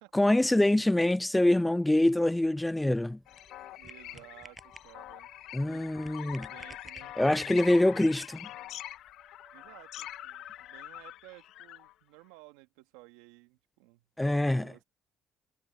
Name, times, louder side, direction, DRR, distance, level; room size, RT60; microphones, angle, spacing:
voice 1, 0.1-3.2 5.5-6.5 7.2-8.5 14.2-14.7, left 1 dB, 10° left, 0.3 m, -25 dB
sound 1, 0.7-10.8, right 5 dB, 35° right, 6.5 m, -67 dB
sound 2, 2.5-8.1, right 2 dB, 15° right, 5.2 m, -54 dB
sound 3, 3.3-11.9, left 13 dB, 70° left, 1.0 m, -44 dB
voice 2, 3.8-5.3 5.7-7.1 9.5-14.8, right 21 dB, 85° right, 2.2 m, -55 dB
hypercardioid pair, 60°, 0 cm